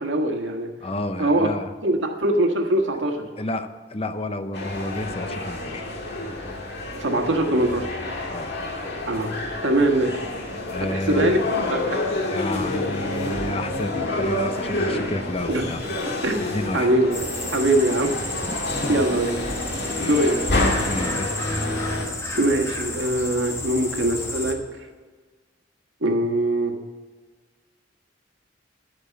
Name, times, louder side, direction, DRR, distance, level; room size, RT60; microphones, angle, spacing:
voice 1, 0.0-0.7 1.2-1.5 1.8-3.3 7.0-7.9 9.1-9.3 9.6-10.2 10.9-11.4 11.7-12.0 15.5-15.7 16.2-16.4 16.7-17.2 17.5-18.1 18.9-19.3 20.0-20.4 22.3-24.6 26.0-26.7, right 1 dB, 85° right, 3 dB, 1.6 m, -22 dB
voice 2, 0.8-1.7 3.4-5.8 8.3-8.5 10.7-11.4 12.2-15.8 16.5-16.9 18.5-19.0 20.0-20.2 20.9-21.5, left 1 dB, 35° left, 10 dB, 0.7 m, -30 dB
sound 1, 4.5-22.1, left 2 dB, 65° left, 1.9 m, -28 dB
sound 2, 17.1-24.5, left 2 dB, 15° left, 1.3 m, -32 dB
12.5 x 5.4 x 8.4 m, 1.5 s
head